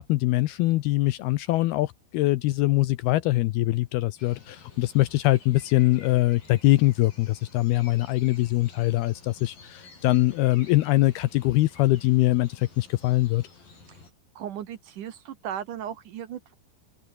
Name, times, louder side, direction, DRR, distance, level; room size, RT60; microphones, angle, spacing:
voice 1, 0.0-13.5, left 18 dB, 80° left, 2.4 m, -23 dB
sound 1, 4.2-14.1, left 4 dB, 50° left, 9.7 m, -51 dB
voice 2, 14.4-16.5, right 10 dB, 60° right, 2.3 m, -36 dB
open air
omnidirectional pair, 5.1 m